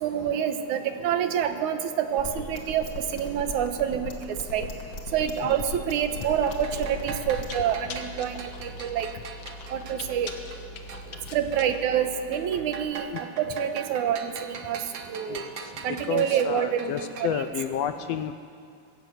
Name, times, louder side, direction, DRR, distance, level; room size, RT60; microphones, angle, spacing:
voice 1, 0.0-4.7 5.1-9.1 9.7-10.3 11.3-13.1 13.4-15.4 15.8-17.5, right 9 dB, 85° right, 8 dB, 2.6 m, -27 dB
sound 1, 2.2-7.6, left 4 dB, 40° left, 2.6 m, -37 dB
Chewing mastication, 5.7-12.9, left 2 dB, 55° left, 2.1 m, -42 dB
sound 2, 6.2-11.3 11.5-17.7, right 6 dB, 55° right, 1.5 m, -42 dB
voice 2, 16.1-18.3, left 9 dB, 75° left, 10 dB, 1.6 m, -30 dB
20.5 x 16.0 x 8.2 m, 2.2 s
omnidirectional pair, 3.4 m